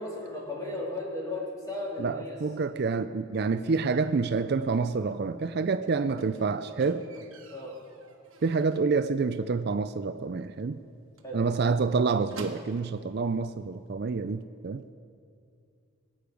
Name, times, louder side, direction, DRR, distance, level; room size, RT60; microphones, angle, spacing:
voice 1, 0.0-2.3 7.5-7.8 11.2-11.4, left 1 dB, 15° left, -5 dB, 3.1 m, -35 dB
voice 2, 2.0-7.0 8.4-10.8 11.3-14.8, right 4 dB, 50° right, 11 dB, 0.4 m, -28 dB
Squeak, 6.2-8.9 9.3-9.7 10.0-10.1 10.4-10.5 10.8-10.9 11.2-13.0 13.9-14.0, right 3 dB, 70° right, 1.3 m, -48 dB
23.0 x 8.7 x 5.2 m, 2.4 s
head